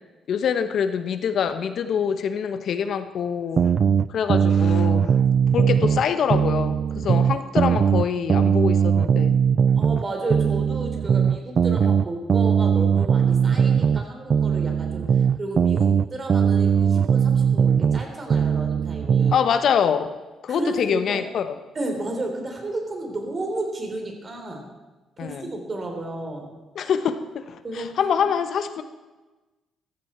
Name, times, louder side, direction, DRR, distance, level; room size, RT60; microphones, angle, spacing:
voice 1, 0.3-3.7 4.1-5.2 5.5-9.4 19.3-20.1 20.4-21.5 25.2-25.5 26.7-28.8, left 7 dB, 65° left, 10 dB, 1.0 m, -25 dB
sound 1, 3.6-6.0 6.3-10.0 10.3-14.0 14.3-18.0 18.3-19.4, right 7 dB, 50° right, 0.4 m, -20 dB
voice 2, 9.8-19.5 20.5-21.2 21.7-24.6 25.2-26.5 27.6-27.9, right 2 dB, 35° right, 3 dB, 3.5 m, -32 dB
15.0 x 14.0 x 4.5 m, 1.2 s
cardioid pair, 90°, 0 cm